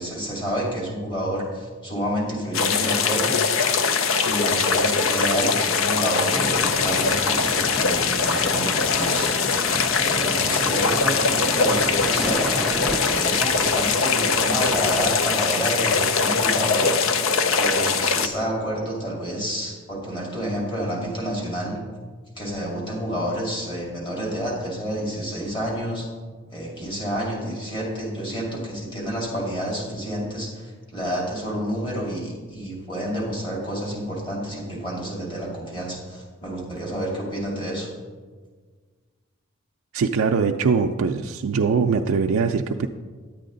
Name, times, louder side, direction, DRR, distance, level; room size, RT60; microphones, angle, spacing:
voice 1, 0.0-3.4 4.2-9.3 9.7-9.8 10.0-16.9 17.3-21.8 22.4-26.1 26.5-37.9, equal, 25° left, -3 dB, 2.3 m, -29 dB
sound 1, 2.5-18.3, left 5 dB, 75° left, 0.6 m, -22 dB
sound 2, 6.3-15.1, equal, ahead, 0.4 m, -32 dB
voice 2, 39.9-42.9, right 5 dB, 85° right, 4 dB, 0.4 m, -22 dB
10.5 x 8.4 x 3.9 m, 1.5 s
head